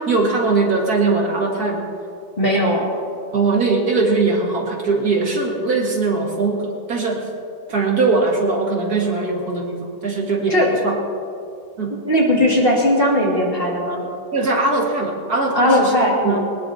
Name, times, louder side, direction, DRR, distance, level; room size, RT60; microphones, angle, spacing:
voice 1, 0.0-1.8 3.3-7.2 7.7-11.0 11.8-12.0 14.3-15.9 16.2-16.4, right 3 dB, 55° right, -1 dB, 2.3 m, -20 dB
voice 2, 2.4-2.9 10.5-10.9 12.0-14.0 15.5-16.4, equal, 30° left, -3 dB, 2.5 m, -18 dB
20.5 x 20.5 x 2.8 m, 2.4 s
omnidirectional pair, 2.0 m